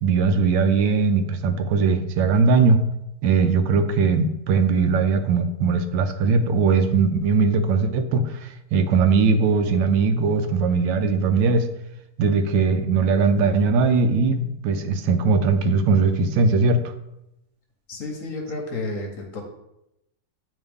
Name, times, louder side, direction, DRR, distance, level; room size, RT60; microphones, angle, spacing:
voice 1, 0.0-2.8 3.2-11.7 12.2-16.8, right 4 dB, 90° right, 9 dB, 1.3 m, -20 dB
voice 2, 17.9-19.4, left 2 dB, 55° left, 2 dB, 1.1 m, -31 dB
9.0 x 3.2 x 3.4 m, 0.86 s
omnidirectional pair, 2.0 m